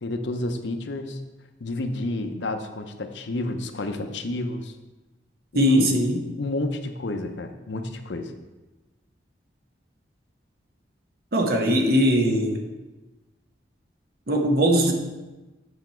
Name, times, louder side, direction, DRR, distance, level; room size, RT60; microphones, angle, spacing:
voice 1, 0.0-1.2 1.6-4.7 5.5-5.9 6.4-8.3, left 2 dB, 75° left, 7 dB, 0.7 m, -30 dB
voice 2, 5.5-6.2 11.3-12.6 14.3-14.9, equal, 55° right, 3 dB, 1.0 m, -20 dB
8.2 x 5.8 x 4.5 m, 1.1 s
head